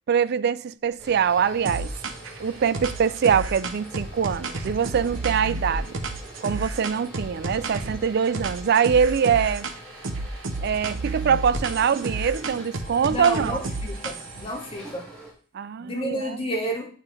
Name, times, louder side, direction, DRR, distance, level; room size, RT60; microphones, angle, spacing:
voice 1, 0.1-1.9 2.4-6.0 6.4-9.7 10.6-13.6 15.5-16.4, right 7 dB, 55° right, 0.4 m, -23 dB
sound 1, 0.8-15.3, right 1 dB, 5° left, 3.1 m, -44 dB
sound 2, 1.6-2.4 2.7-8.0 8.3-9.8 10.0-14.5, right 3 dB, 80° right, 0.9 m, -31 dB
voice 2, 13.1-15.1 15.8-16.9, equal, 30° left, 2.3 m, -30 dB
8.9 x 5.8 x 4.5 m
head